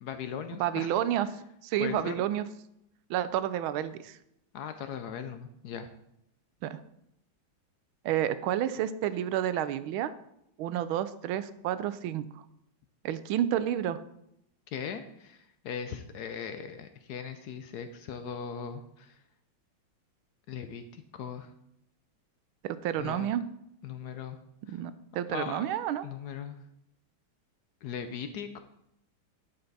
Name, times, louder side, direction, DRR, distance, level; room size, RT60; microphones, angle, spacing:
voice 1, 0.0-1.0 1.8-2.2 4.5-5.9 14.7-19.2 20.5-21.5 23.0-23.3 23.8-24.4 24.7-24.8 25.3-25.7 26.0-26.6 27.8-28.6, left 7 dB, 70° left, 9 dB, 0.9 m, -39 dB
voice 2, 0.6-1.3 1.6-2.5 3.1-4.2 6.6-6.8 8.0-10.1 10.6-12.3 13.0-14.0 22.6-23.4 24.7-26.1, right 11 dB, 80° right, 14 dB, 1.4 m, -30 dB
11.5 x 5.7 x 4.1 m, 0.78 s
omnidirectional pair, 2.3 m